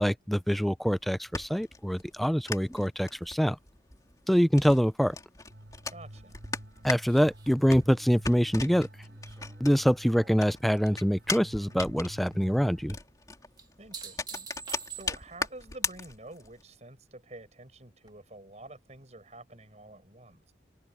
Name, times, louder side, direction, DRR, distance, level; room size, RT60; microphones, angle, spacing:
voice 1, 0.0-3.6 4.3-5.2 6.8-8.9 9.6-13.0, equal, ahead, 0.3 m, -25 dB
sound 1, 0.9-10.1 10.4-16.6, left 3 dB, 20° left, 3.0 m, -38 dB
sound 2, 5.5-12.9, equal, 70° right, 4.0 m, -48 dB
voice 2, 5.9-6.4 13.8-14.5 14.9-20.5, right 2 dB, 40° right, 6.0 m, -48 dB
sound 3, 7.0-10.5 10.9-11.5 13.6-15.5 18.1-18.2, right 6 dB, 25° right, 1.9 m, -47 dB
head